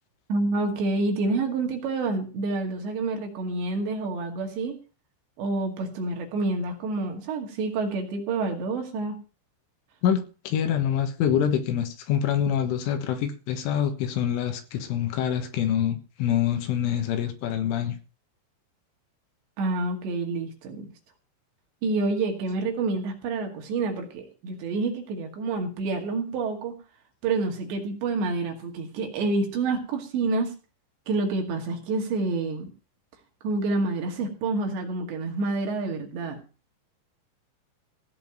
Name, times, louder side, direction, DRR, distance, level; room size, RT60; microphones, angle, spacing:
voice 1, 0.3-4.8 5.4-9.2 19.6-20.9 21.8-26.8 27.2-30.5 31.1-32.7 33.4-36.4, right 3 dB, 70° right, 4.4 m, -28 dB
voice 2, 10.0-18.0, left 9 dB, 85° left, 3.9 m, -26 dB
16.5 x 5.5 x 9.1 m
omnidirectional pair, 5.5 m